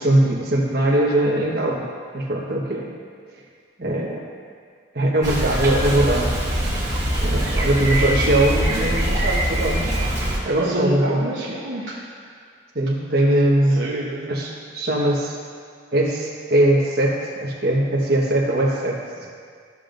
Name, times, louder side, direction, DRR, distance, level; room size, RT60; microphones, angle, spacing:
voice 1, 0.0-1.9 2.1-3.0 3.8-4.3 4.9-6.3 7.2-9.9 10.4-11.2 12.7-13.8 14.3-15.4 15.9-19.3, right 1 dB, 50° right, -3 dB, 1.3 m, -21 dB
Bicycle, 5.2-10.4, right 1 dB, 15° right, 2.0 m, -23 dB
voice 2, 10.6-12.3 13.7-14.3, right 1 dB, 65° right, -6 dB, 1.1 m, -29 dB
13.5 x 7.1 x 2.6 m, 2.1 s
head